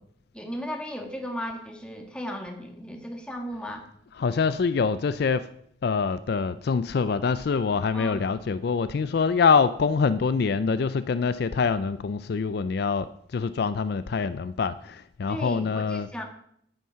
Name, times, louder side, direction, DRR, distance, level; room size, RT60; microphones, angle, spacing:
voice 1, 0.3-3.9 7.9-8.2 15.3-16.2, equal, 5° left, 3 dB, 1.4 m, -35 dB
voice 2, 4.2-5.5 5.8-16.1, left 5 dB, 55° left, 13 dB, 0.4 m, -25 dB
9.2 x 9.1 x 5.6 m, 0.70 s
head